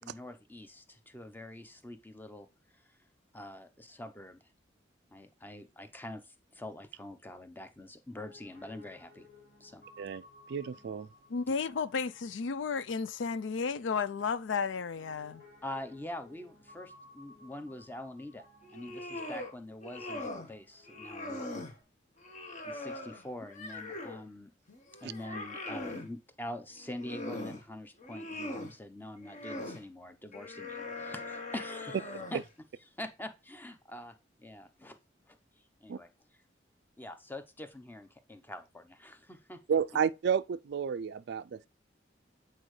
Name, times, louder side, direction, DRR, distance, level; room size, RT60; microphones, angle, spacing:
voice 1, 0.0-2.5 2.7-2.9 3.3-4.4 5.1-9.3 9.6-9.8 11.5-11.6 15.6-18.4 18.7-21.4 22.6-24.5 25.0-32.0 32.3-32.4 33.0-35.0 35.3-35.4 35.8-36.1 37.0-39.6, left 1 dB, 10° left, 0.7 m, -45 dB
Piano, 8.1-21.8, left 2 dB, 60° left, 2.3 m, -59 dB
voice 2, 10.5-11.1 35.9-36.0 39.7-41.7, right 7 dB, 60° right, 0.3 m, -31 dB
voice 3, 11.3-15.4, left 5 dB, 80° left, 0.5 m, -33 dB
sound 1, 18.6-19.5 19.8-20.5 20.9-21.7 22.2-24.2 24.7-26.1 26.7-27.6 28.0-28.7 29.2-29.8 30.3-32.5, left 2 dB, 40° left, 1.2 m, -41 dB
8.5 x 4.4 x 3.2 m
head